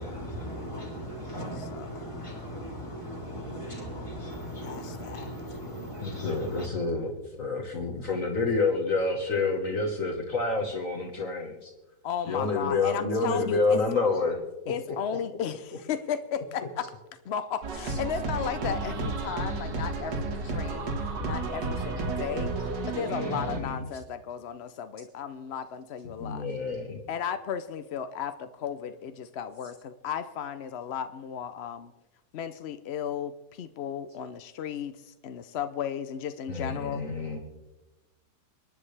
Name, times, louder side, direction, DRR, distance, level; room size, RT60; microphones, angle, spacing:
voice 1, 0.0-6.7, equal, 15° left, -3 dB, 3.4 m, -38 dB
voice 2, 4.6-5.3 12.0-13.8 14.7-16.9 17.2-26.5 27.1-31.9 32.3-37.0, left 8 dB, 70° left, 10 dB, 0.6 m, -35 dB
voice 3, 6.0-7.1 7.4-11.7 12.3-14.4 21.7-21.8 23.1-23.8 26.2-27.0 36.5-37.4, left 3 dB, 50° left, 0 dB, 1.7 m, -28 dB
sound 1, 17.6-23.6, right 3 dB, 85° right, 2.2 m, -32 dB
25.5 x 10.5 x 3.3 m, 1.1 s
omnidirectional pair, 1.8 m